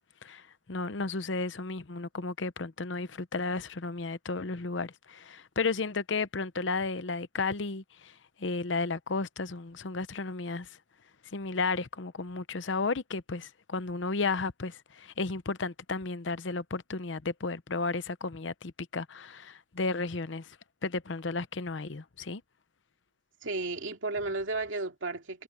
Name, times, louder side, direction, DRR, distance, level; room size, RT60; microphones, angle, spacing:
voice 1, 0.2-10.8 11.3-20.6 20.8-22.4, left 3 dB, 75° left, 0.8 m, -33 dB
voice 2, 23.4-25.4, right 3 dB, 85° right, 2.5 m, -33 dB
head